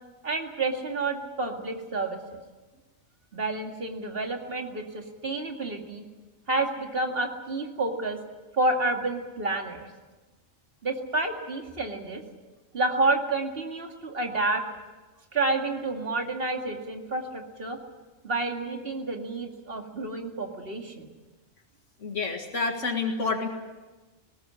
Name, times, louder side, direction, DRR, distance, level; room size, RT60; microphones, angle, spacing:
voice 1, 0.2-2.4 3.3-6.0 6.5-8.2 8.5-9.9 10.8-12.2 12.7-14.6 15.3-17.8 18.2-21.1, right 2 dB, 50° right, 3 dB, 2.5 m, -29 dB
voice 2, 22.0-23.5, left 4 dB, 75° left, 3 dB, 2.2 m, -28 dB
19.5 x 17.5 x 9.9 m, 1.2 s
omnidirectional pair, 1.3 m